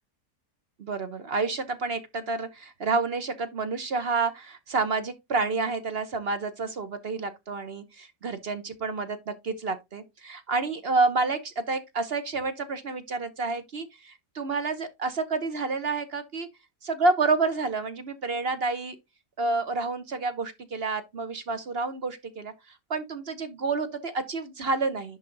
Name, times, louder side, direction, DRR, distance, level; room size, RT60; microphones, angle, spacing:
voice 1, 0.8-16.5 16.8-19.0 19.4-25.2, right 3 dB, 50° right, 0.8 m, -29 dB
10.5 x 3.6 x 3.8 m
omnidirectional pair, 1.7 m